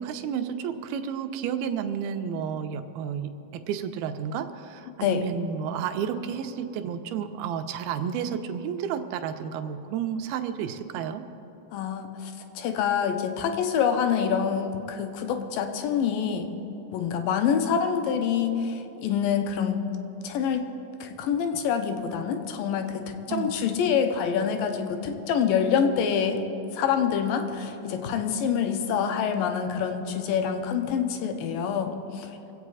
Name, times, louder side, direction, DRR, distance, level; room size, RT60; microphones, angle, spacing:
voice 1, 0.0-11.3 23.3-23.5, right 8 dB, 80° right, 8 dB, 2.5 m, -31 dB
voice 2, 11.7-16.5 16.9-19.8 20.2-20.7 21.0-26.4 26.7-32.4, left 7 dB, 75° left, 6 dB, 2.4 m, -26 dB
25.0 x 8.3 x 4.8 m, 3.0 s
omnidirectional pair, 4.4 m